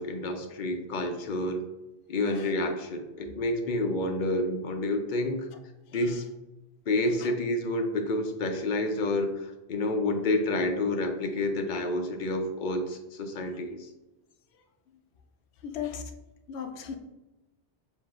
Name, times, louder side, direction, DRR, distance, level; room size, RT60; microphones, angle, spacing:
voice 1, 0.0-1.6 2.1-5.5 5.9-6.2 6.9-13.9, left 1 dB, 60° left, 6 dB, 0.6 m, -29 dB
voice 2, 2.3-2.6 5.9-6.1 7.2-7.3 15.6-16.1 16.5-17.0, left 8 dB, 85° left, 6 dB, 0.9 m, -37 dB
7.0 x 2.6 x 2.4 m, 1.0 s
omnidirectional pair, 1.1 m